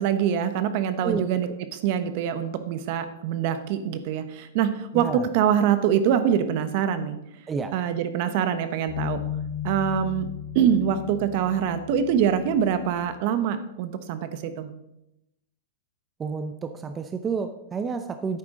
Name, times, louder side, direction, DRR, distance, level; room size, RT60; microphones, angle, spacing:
voice 1, 0.0-7.2 7.7-9.2 9.6-10.3 10.5-14.7, right 8 dB, 55° right, 10 dB, 1.1 m, -24 dB
voice 2, 4.9-5.3 7.5-7.7 16.2-18.4, right 5 dB, 20° right, 8 dB, 0.6 m, -30 dB
sound 1, 8.9-13.1, left 9 dB, 75° left, 1.2 m, -35 dB
10.5 x 8.5 x 3.8 m, 0.84 s
hypercardioid pair, 130°, 0 cm